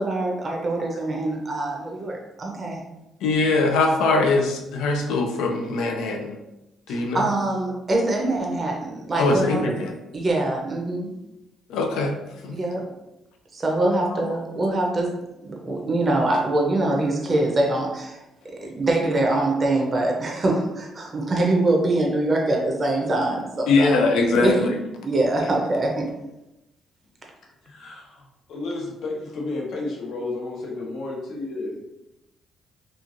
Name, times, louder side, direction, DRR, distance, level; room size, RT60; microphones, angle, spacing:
voice 1, 0.0-2.8 6.9-9.7 10.1-11.1 12.5-12.9 13.5-15.1 15.4-24.0 24.4-24.7 25.0-26.1, right 2 dB, 35° right, 0 dB, 0.5 m, -24 dB
voice 2, 3.2-6.4 6.9-7.3 9.2-9.9 11.7-12.1 12.4-12.6 14.1-14.4 23.7-24.8, left 3 dB, 90° left, 3 dB, 0.4 m, -22 dB
voice 3, 27.6-31.8, left 2 dB, 70° left, -2 dB, 0.8 m, -32 dB
3.0 x 2.4 x 2.4 m, 0.94 s
cardioid pair, 90°, 0 cm